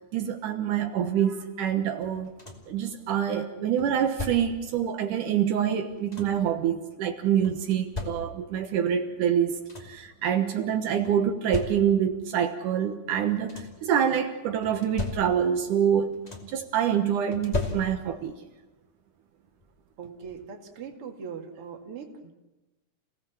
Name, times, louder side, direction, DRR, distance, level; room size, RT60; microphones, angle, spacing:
voice 1, 0.1-2.3 2.7-9.6 9.8-16.2 16.4-18.3, right 9 dB, 80° right, 5 dB, 2.7 m, -26 dB
sound 1, 2.0-2.8 3.8-4.7 5.7-6.5 7.4-8.6 9.2-9.3 9.5-10.1 11.0-12.2 13.1-13.9 14.6-15.7 15.9-16.7 17.3-18.3 19.6-19.7 20.2-20.4, left 3 dB, 15° left, 2.6 m, -37 dB
voice 2, 20.0-22.3, right 6 dB, 45° right, 3 dB, 3.0 m, -40 dB
29.0 x 18.0 x 7.3 m, 1.1 s
omnidirectional pair, 3.7 m